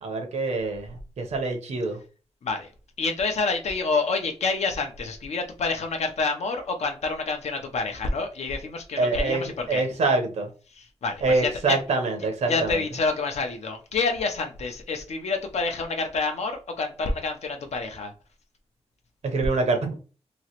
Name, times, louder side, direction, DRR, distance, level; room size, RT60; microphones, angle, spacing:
voice 1, 0.0-2.0 9.0-9.4 9.7-10.5 11.2-12.8 19.2-20.0, right 3 dB, 85° right, 0.8 m, -25 dB
voice 2, 3.0-9.8 10.8-11.8 12.5-18.1, left 4 dB, 80° left, 0.7 m, -28 dB
3.0 x 2.9 x 2.9 m
wide cardioid pair, 150°, 11 cm